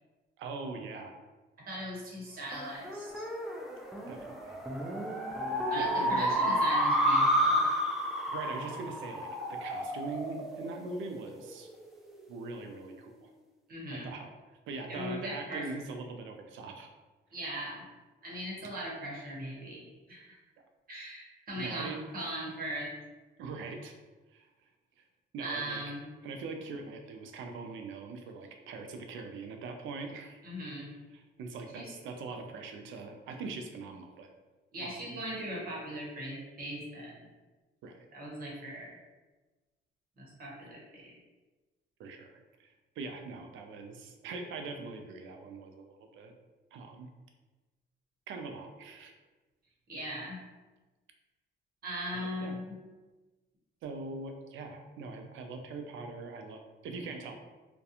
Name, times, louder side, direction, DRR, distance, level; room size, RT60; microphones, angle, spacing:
voice 1, 0.4-1.2 4.0-4.6 5.7-6.4 8.3-11.7 12.3-13.3 13.9-14.3 14.7-16.9 21.6-22.1 23.4-23.9 24.3-24.5 25.3-25.9 26.2-30.4 31.1-34.3 34.8-35.2 37.8-38.1 42.0-42.3 42.6-46.3 46.7-47.1 48.3-49.1 52.1-52.6 53.8-57.3, right 3 dB, 80° right, 4 dB, 0.4 m, -42 dB
voice 2, 1.7-3.2 5.7-7.6 13.7-14.1 14.9-15.7 17.3-17.9 18.2-20.2 20.9-22.9 25.4-26.1 30.4-30.9 31.7-31.9 34.7-37.2 38.1-38.9 40.2-41.1 49.9-50.4 51.8-52.8, equal, 50° right, -4 dB, 1.0 m, -39 dB
sound 1, 2.5-11.4, equal, ahead, 0.4 m, -30 dB
2.4 x 2.2 x 2.8 m, 1.2 s
cardioid pair, 100°, 20 cm